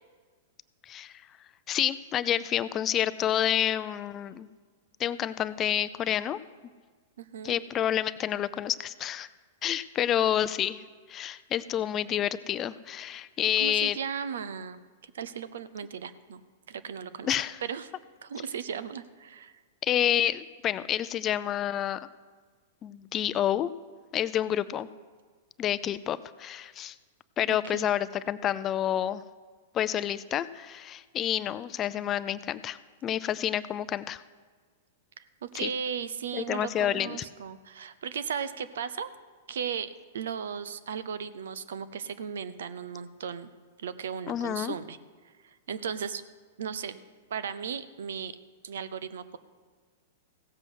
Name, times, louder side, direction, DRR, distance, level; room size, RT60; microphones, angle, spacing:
voice 1, 1.7-4.5 5.0-6.4 7.4-9.3 9.6-10.8 11.1-14.0 17.2-17.6 19.8-22.1 22.8-23.7 24.1-24.9 25.6-27.0 27.4-29.2 29.7-34.2 35.5-35.7 36.3-37.2 44.3-44.7, left 11 dB, 30° left, 15 dB, 0.5 m, -29 dB
voice 2, 7.2-7.5 8.6-8.7 13.6-16.4 16.7-17.4 17.6-17.9 18.2-19.5 27.5-27.9 35.2-39.1 39.5-43.5 43.8-45.0 45.4-46.2 46.6-47.0 47.3-48.3 48.6-49.4, right 7 dB, 75° right, 14 dB, 0.7 m, -36 dB
16.0 x 7.6 x 6.3 m, 1.5 s
hypercardioid pair, 120°, 0 cm